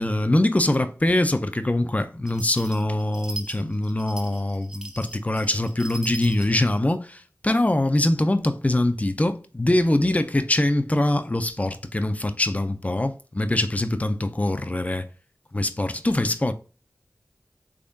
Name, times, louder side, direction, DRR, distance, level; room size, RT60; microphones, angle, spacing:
voice 1, 0.0-15.1 15.5-16.5, left 1 dB, 25° left, 0.5 m, -23 dB
sound 1, 2.3-6.7, right 1 dB, 10° right, 0.8 m, -39 dB
3.6 x 3.4 x 2.6 m
wide cardioid pair, 50°, 6 cm